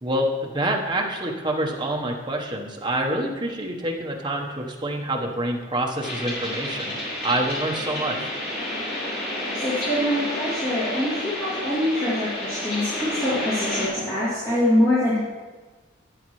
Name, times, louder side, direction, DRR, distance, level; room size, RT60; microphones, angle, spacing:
voice 1, 0.0-6.9 7.2-8.3, right 1 dB, 20° right, -1 dB, 1.1 m, -27 dB
sound 1, 6.0-13.9, left 1 dB, 50° left, 3.4 m, -30 dB
voice 2, 9.5-15.2, left 1 dB, 20° left, -11 dB, 2.9 m, -24 dB
12.5 x 8.7 x 3.2 m, 1.3 s
head